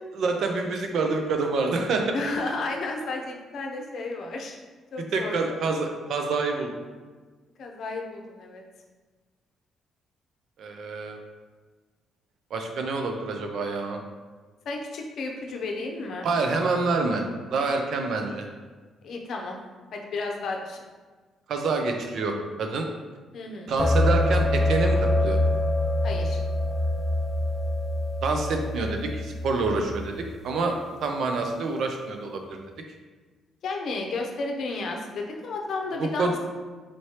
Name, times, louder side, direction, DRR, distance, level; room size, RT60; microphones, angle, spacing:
voice 1, 0.0-2.2 5.1-6.7 10.6-11.2 12.5-14.0 16.2-18.5 21.5-22.9 23.7-25.4 28.2-30.8 31.0-32.6 36.0-36.3, right 3 dB, 70° right, 3 dB, 0.5 m, -27 dB
voice 2, 2.1-4.6 4.9-5.6 7.6-8.6 14.7-16.3 19.0-19.6 19.9-20.9 23.3-23.7 26.0-26.4 33.6-36.4, left 3 dB, 65° left, 1 dB, 0.6 m, -32 dB
sound 1, 23.8-30.3, left 1 dB, 10° left, 0.4 m, -25 dB
4.3 x 3.1 x 2.9 m, 1.4 s
cardioid pair, 90°, 0 cm